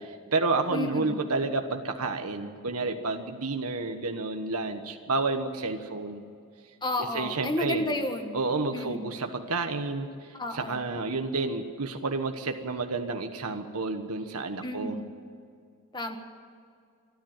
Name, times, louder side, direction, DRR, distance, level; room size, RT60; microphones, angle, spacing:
voice 1, 0.0-6.2 7.1-7.9 8.3-10.1 10.5-15.0, right 3 dB, 85° right, 5 dB, 1.3 m, -30 dB
voice 2, 0.7-1.2 6.8-8.4 8.7-9.1 10.3-10.9 14.6-15.1 15.9-16.2, left 1 dB, 20° left, 5 dB, 1.8 m, -31 dB
27.0 x 10.5 x 9.1 m, 2.3 s
head